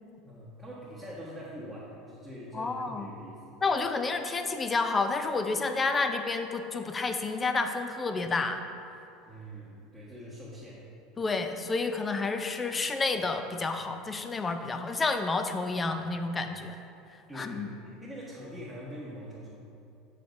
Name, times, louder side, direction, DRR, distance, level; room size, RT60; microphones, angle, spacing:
voice 1, 0.2-3.7 9.3-10.8 17.3-19.5, equal, 5° right, -8 dB, 1.2 m, -43 dB
voice 2, 2.5-3.1 3.6-8.6 11.2-16.8 17.4-17.7, left 3 dB, 25° left, 7 dB, 0.5 m, -30 dB
6.8 x 6.6 x 2.6 m, 2.7 s
hypercardioid pair, 90°, 0 cm